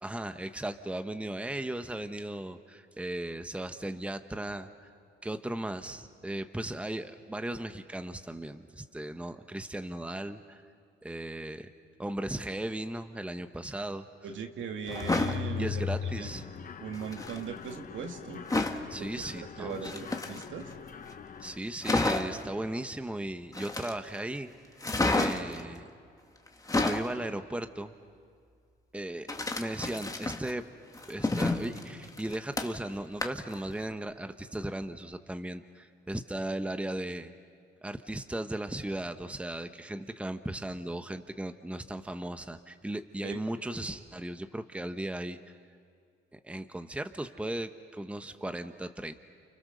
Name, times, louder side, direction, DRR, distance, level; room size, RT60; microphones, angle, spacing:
voice 1, 0.0-4.7 5.2-10.6 11.0-11.7 12.0-14.1 15.6-16.4 18.9-19.9 21.4-24.5 25.0-25.9 26.8-27.9 28.9-29.3 29.5-30.6 31.1-37.3 37.8-45.4 46.3-49.1, right 1 dB, 5° right, 8 dB, 1.1 m, -36 dB
voice 2, 14.2-16.3 16.8-18.4 19.0-20.7 25.1-25.3 43.2-43.4, right 6 dB, 75° right, 3 dB, 2.5 m, -39 dB
Mechanisms, 14.9-21.6, left 7 dB, 45° left, 1.0 m, -39 dB
sound 1, 14.9-15.4 16.9-17.4 18.5-18.9 19.7-20.7 21.1-21.2 21.5-21.6 21.8-22.4 23.5-24.2 24.8-25.6 26.5-27.1 29.3-30.5 30.9-32.9 33.2-33.5 33.9-34.0, left 2 dB, 15° left, 1.8 m, -30 dB
30.0 x 29.5 x 6.7 m, 2.2 s
cardioid pair, 90°, 20 cm